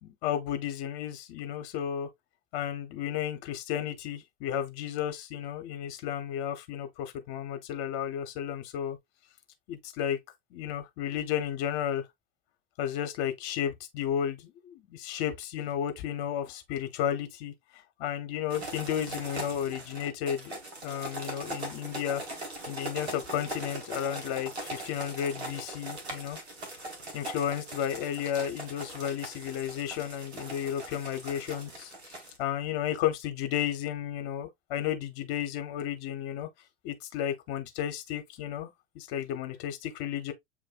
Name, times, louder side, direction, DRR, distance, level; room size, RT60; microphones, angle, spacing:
voice 1, 0.0-2.1 2.5-9.0 9.7-10.2 10.5-12.0 12.8-17.5 18.0-22.2 22.7-26.4 27.1-36.5 36.8-38.7 38.9-40.3, left 10 dB, 60° left, 1.1 m, -33 dB
sound 1, 18.5-32.4, right 2 dB, 90° right, 1.4 m, -41 dB
7.5 x 2.6 x 2.4 m
hypercardioid pair, 80°, 31 cm